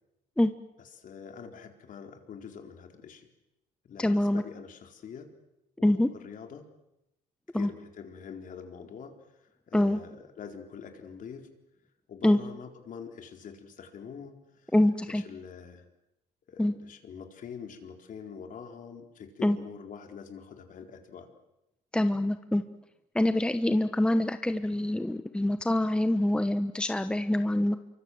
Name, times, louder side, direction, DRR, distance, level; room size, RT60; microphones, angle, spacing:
voice 1, 1.0-3.3 3.8-5.3 5.8-6.7 7.5-11.5 12.1-14.7 15.1-15.9 16.5-21.3, left 6 dB, 50° left, 5 dB, 4.2 m, -45 dB
voice 2, 4.0-4.4 5.8-6.1 7.5-7.7 9.7-10.0 12.2-12.4 14.7-15.2 16.6-16.7 19.4-19.6 21.9-22.6 23.1-27.8, left 1 dB, 5° left, 10 dB, 1.1 m, -25 dB
27.5 x 24.0 x 7.9 m, 0.88 s
cardioid pair, 110°, 17 cm